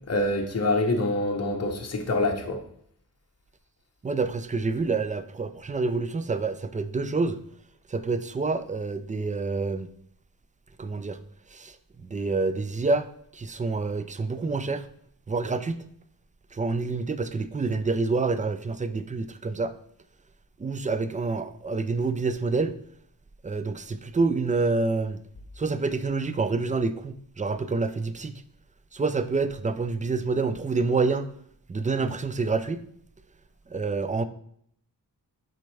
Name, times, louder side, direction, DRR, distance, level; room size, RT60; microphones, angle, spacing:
voice 1, 0.1-2.6, left 2 dB, 40° left, 2 dB, 1.1 m, -25 dB
voice 2, 4.0-7.4 7.9-9.9 10.8-11.2 11.5-11.7 12.0-13.1 13.3-14.8 15.3-15.8 16.5-19.7 20.6-22.8 23.4-25.2 25.6-28.3 28.9-31.3 31.7-32.8 33.7-34.2, right 3 dB, 20° right, 11 dB, 0.4 m, -27 dB
7.5 x 4.3 x 3.3 m, 0.67 s
wide cardioid pair, 110°, 38 cm